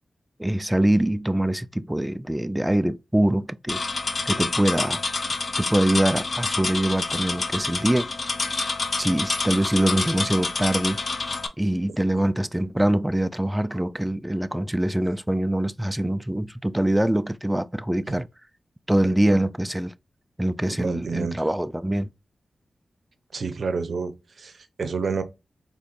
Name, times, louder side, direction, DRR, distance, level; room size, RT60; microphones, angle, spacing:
voice 1, 0.4-3.8 4.3-5.0 5.6-8.1 9.0-11.0 11.6-18.3 18.9-19.9 20.4-22.1, right 1 dB, 10° right, 0.3 m, -24 dB
sound 1, 3.7-11.5, left 3 dB, 55° left, 0.6 m, -28 dB
voice 2, 19.0-19.4 20.8-21.4 23.3-25.2, right 5 dB, 65° right, 0.7 m, -30 dB
4.1 x 3.0 x 2.5 m
cardioid pair, 60°, 0 cm